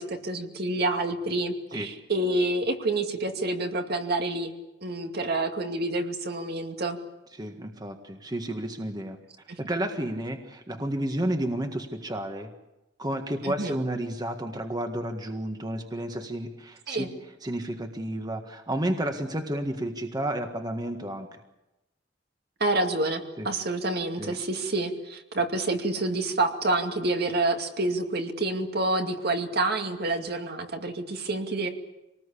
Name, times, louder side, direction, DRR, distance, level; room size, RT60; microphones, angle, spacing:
voice 1, 0.0-4.5 4.8-7.0 9.5-9.6 13.4-13.7 16.9-17.1 22.6-31.7, right 2 dB, 60° right, 4 dB, 2.4 m, -28 dB
voice 2, 7.4-9.2 9.6-12.5 13.0-17.1 17.4-21.3 23.4-23.5 24.2-24.4, right 1 dB, 20° right, 5 dB, 1.7 m, -31 dB
26.0 x 19.5 x 8.5 m, 0.96 s
head